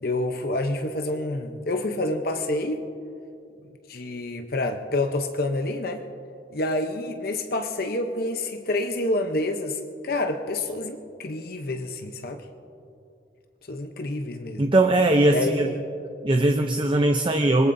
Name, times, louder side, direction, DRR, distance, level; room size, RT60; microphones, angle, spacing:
voice 1, 0.0-2.8 3.9-6.0 6.5-12.4 13.7-14.6 15.3-15.8, left 2 dB, 55° left, 5 dB, 0.8 m, -28 dB
voice 2, 14.6-15.7 16.2-17.7, right 2 dB, 30° right, 5 dB, 0.6 m, -20 dB
26.0 x 21.0 x 2.7 m, 2.6 s
head